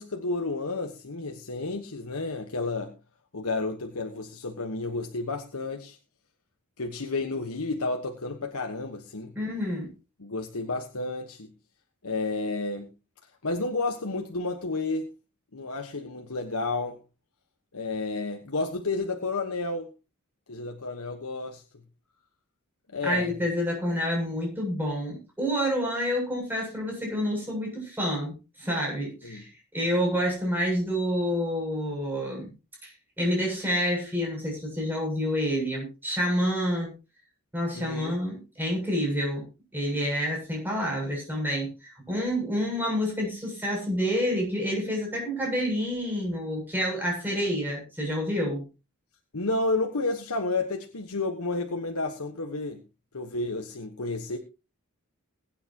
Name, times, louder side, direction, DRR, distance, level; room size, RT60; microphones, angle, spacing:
voice 1, 0.0-2.9 3.3-6.0 6.8-9.3 10.2-11.5 12.0-12.9 13.4-15.1 15.5-17.0 17.7-19.9 20.5-21.6 22.9-23.3 29.2-29.5 37.7-38.2 49.3-52.8 53.1-54.4, left 3 dB, 85° left, 4 dB, 1.3 m, -31 dB
voice 2, 9.3-9.9 23.0-32.5 32.8-32.9 33.2-36.9 37.5-39.5 39.7-48.6, equal, 10° right, -1 dB, 7.7 m, -28 dB
20.5 x 9.2 x 3.0 m, 0.30 s
head